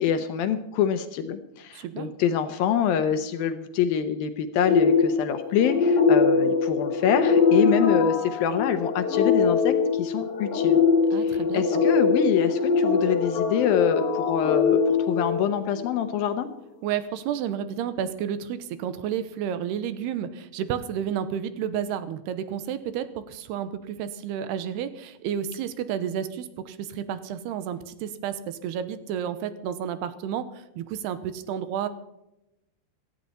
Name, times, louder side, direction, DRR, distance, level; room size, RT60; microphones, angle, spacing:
voice 1, 0.0-10.8 11.2-16.5, left 8 dB, 75° left, 9 dB, 2.4 m, -26 dB
voice 2, 1.7-2.1 11.1-11.8 16.8-31.9, right 9 dB, 80° right, 12 dB, 2.9 m, -31 dB
sound 1, 4.6-15.9, left 5 dB, 60° left, 2.8 m, -22 dB
17.0 x 13.5 x 4.2 m, 0.91 s
omnidirectional pair, 4.8 m